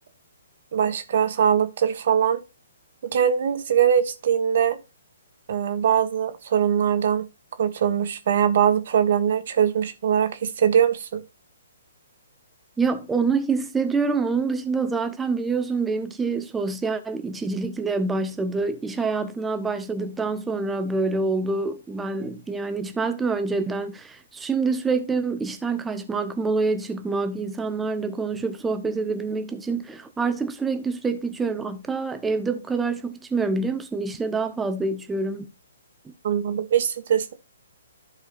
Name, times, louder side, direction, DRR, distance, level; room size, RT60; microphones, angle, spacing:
voice 1, 0.7-2.4 3.1-4.8 5.5-7.2 7.6-11.2 36.2-37.3, right 8 dB, 55° right, 1.6 m, -22 dB
voice 2, 12.8-35.4 36.0-36.1, right 4 dB, 10° right, 1.1 m, -26 dB
14.5 x 5.0 x 2.5 m
figure-of-eight pair, 130°, 0 cm